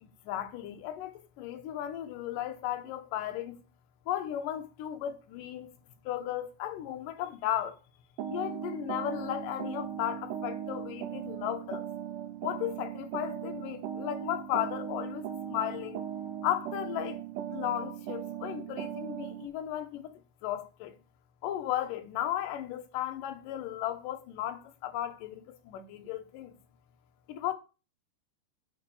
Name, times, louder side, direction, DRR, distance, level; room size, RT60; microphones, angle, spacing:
voice 1, 0.0-3.6 4.1-5.7 6.1-7.8 8.3-11.9 12.4-16.0 16.4-17.2 17.5-20.1 20.4-20.9 21.4-26.5 27.3-27.5, left 12 dB, 75° left, 2.4 m, -35 dB
sound 1, 8.2-19.5, right 10 dB, 75° right, 2.0 m, -38 dB
9.1 x 3.7 x 6.9 m
omnidirectional pair, 4.2 m